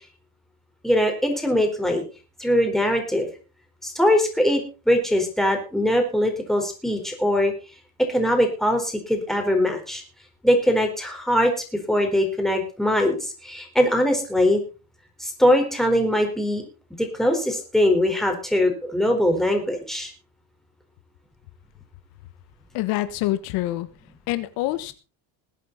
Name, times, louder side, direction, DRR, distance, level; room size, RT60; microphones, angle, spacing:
voice 1, 0.8-2.0 2.4-3.3 3.8-7.5 8.1-10.0 10.4-11.5 11.9-13.2 13.4-14.6 15.2-16.7 17.0-20.1, left 1 dB, ahead, 4.5 m, -21 dB
voice 2, 22.7-23.9 24.3-24.9, left 16 dB, 90° left, 1.4 m, -26 dB
20.5 x 8.6 x 4.2 m
cardioid pair, 120°, 34 cm